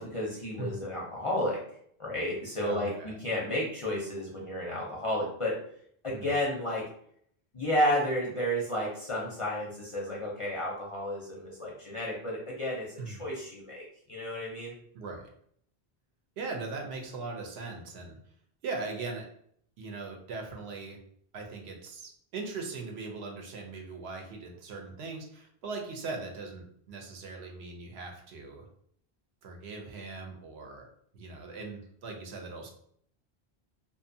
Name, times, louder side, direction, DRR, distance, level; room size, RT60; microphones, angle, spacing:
voice 1, 0.0-1.6 2.0-5.5 6.0-6.9 7.5-14.8, equal, 45° left, -4 dB, 0.5 m, -32 dB
voice 2, 2.6-3.2 6.1-6.3 13.0-13.2 14.9-15.3 16.4-18.2 18.6-19.3 19.8-21.0 21.3-28.7 29.4-30.9 31.1-32.7, right 3 dB, 80° right, 2 dB, 0.9 m, -40 dB
2.5 x 2.2 x 2.6 m, 0.65 s
omnidirectional pair, 1.1 m